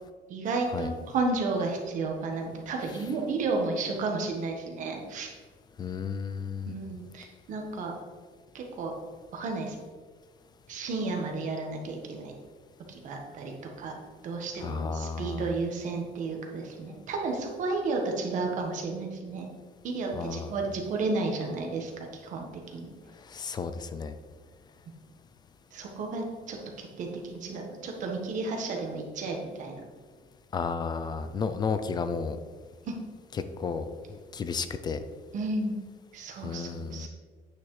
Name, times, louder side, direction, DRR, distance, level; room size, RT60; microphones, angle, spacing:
voice 1, 0.3-5.3 6.6-7.9 8.5-8.9 9.3-9.8 10.7-12.3 12.9-14.0 14.2-19.5 19.8-22.9 25.7-29.8 32.8-32.9 35.3-35.8 36.1-37.1, right 3 dB, 55° right, 2 dB, 1.4 m, -32 dB
voice 2, 5.8-6.7 14.6-15.5 20.1-20.5 23.3-24.1 30.5-32.4 33.6-35.0 36.4-37.1, left 5 dB, 25° left, 10 dB, 0.4 m, -33 dB
9.0 x 6.1 x 3.2 m, 1.5 s
cardioid pair, 170°, 16 cm